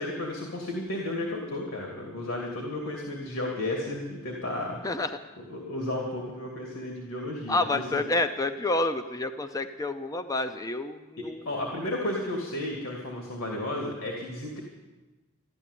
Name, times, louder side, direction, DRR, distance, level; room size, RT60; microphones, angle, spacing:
voice 1, 0.0-4.8 5.4-8.0 11.4-14.6, left 1 dB, 70° left, -1 dB, 2.6 m, -33 dB
voice 2, 7.5-11.5, left 2 dB, 15° left, 9 dB, 0.5 m, -29 dB
13.5 x 12.5 x 8.3 m, 1.2 s
head